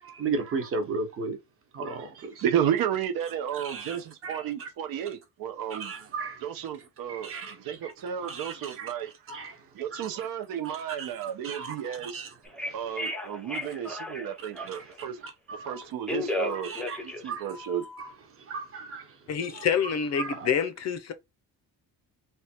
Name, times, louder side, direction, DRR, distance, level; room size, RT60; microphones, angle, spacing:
voice 1, 0.0-1.4 1.7-2.4 3.5-4.7 5.7-6.4 7.1-7.9 8.2-8.9 9.3-9.6 9.9-10.3 10.6-11.1 11.4-12.3 12.7-12.8 14.6-15.7 16.5-17.5 18.4-19.1 19.5-19.6 20.2-20.5, right 4 dB, 35° right, 1.0 m, -36 dB
voice 2, 2.4-5.9 6.4-9.1 9.7-12.3 12.7-15.2 15.6-16.7 17.0-17.9, right 9 dB, 70° right, 0.9 m, -32 dB
Telephone, 12.4-14.9 15.7-18.1, left 1 dB, 5° left, 0.6 m, -34 dB
voice 3, 19.3-21.1, left 7 dB, 45° left, 0.6 m, -27 dB
3.5 x 2.3 x 4.3 m
cardioid pair, 170°, 37 cm